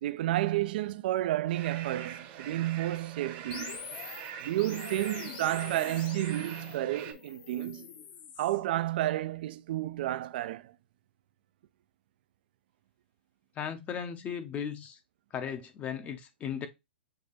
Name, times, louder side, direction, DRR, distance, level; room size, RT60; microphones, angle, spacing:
voice 1, 0.0-3.8 4.4-7.9 8.4-10.7, right 15 dB, 55° right, 0.3 m, -31 dB
sound 1, 1.5-7.1, right 9 dB, 40° right, 0.8 m, -44 dB
sound 2, 3.5-8.6, left 8 dB, 50° left, 0.9 m, -45 dB
voice 2, 13.6-15.0 15.3-16.7, left 8 dB, 25° left, 0.6 m, -36 dB
6.6 x 2.2 x 3.0 m
hypercardioid pair, 130°, 6 cm